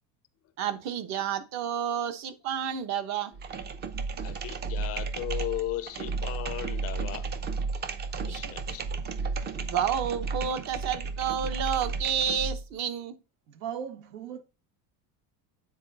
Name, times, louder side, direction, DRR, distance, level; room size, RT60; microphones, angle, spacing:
voice 1, 0.6-3.3 8.2-8.5 9.6-13.1, right 8 dB, 45° right, 1.1 m, -30 dB
sound 1, 3.3-12.6, right 4 dB, 25° right, 0.6 m, -33 dB
voice 2, 4.2-7.3 8.1-8.9, left 15 dB, 40° left, 0.5 m, -36 dB
voice 3, 13.5-14.4, right 8 dB, 80° right, 1.6 m, -37 dB
9.3 x 4.1 x 4.0 m
cardioid pair, 150°, 38 cm